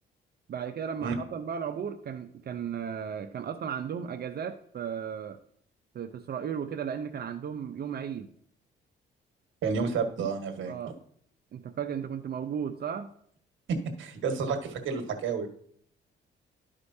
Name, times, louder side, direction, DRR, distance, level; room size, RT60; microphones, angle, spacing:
voice 1, 0.5-5.4 5.9-8.3 10.7-10.9 11.5-13.1, right 7 dB, 50° right, 7 dB, 0.7 m, -35 dB
voice 2, 9.6-10.7 13.7-15.5, right 5 dB, 75° right, 6 dB, 1.6 m, -30 dB
12.5 x 5.0 x 2.7 m, 0.62 s
cardioid pair, 90°, 20 cm